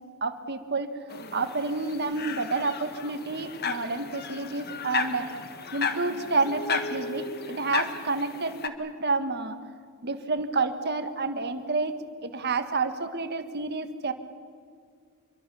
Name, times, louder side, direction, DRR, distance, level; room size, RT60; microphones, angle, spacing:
voice 1, 0.2-1.0 1.3-5.3 5.7-9.6 10.0-14.1, right 3 dB, 50° right, 9 dB, 1.7 m, -29 dB
sound 1, 1.1-8.7, left 5 dB, 45° left, 1.7 m, -34 dB
27.0 x 23.0 x 7.2 m, 2.1 s
head